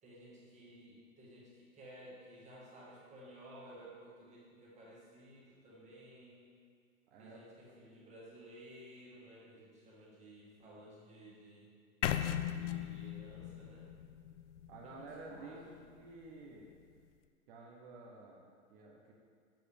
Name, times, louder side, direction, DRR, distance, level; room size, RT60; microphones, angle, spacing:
voice 1, 0.0-6.5 7.2-11.7 12.4-13.9 14.8-15.8, right 1 dB, 15° right, -5 dB, 1.7 m, -55 dB
voice 2, 7.1-7.4 14.7-16.7 17.5-19.1, right 3 dB, 45° right, -1 dB, 1.2 m, -52 dB
sound 1, 12.0-16.0, left 11 dB, 60° left, 0.5 m, -38 dB
7.6 x 6.7 x 3.4 m, 2.1 s
hypercardioid pair, 135°, 42 cm